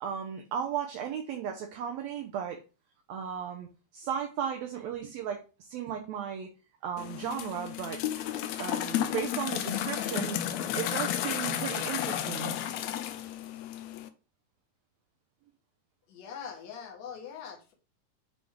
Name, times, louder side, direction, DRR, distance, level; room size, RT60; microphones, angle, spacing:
voice 1, 0.0-2.6 3.1-6.5 6.8-8.0 8.6-10.4 10.7-12.6, right 8 dB, 75° right, 4 dB, 1.8 m, -35 dB
sound 1, 7.0-14.1, left 11 dB, 80° left, 1.6 m, -32 dB
voice 2, 16.1-17.7, left 7 dB, 65° left, 3 dB, 2.3 m, -42 dB
7.7 x 3.4 x 3.6 m, 0.33 s
omnidirectional pair, 3.6 m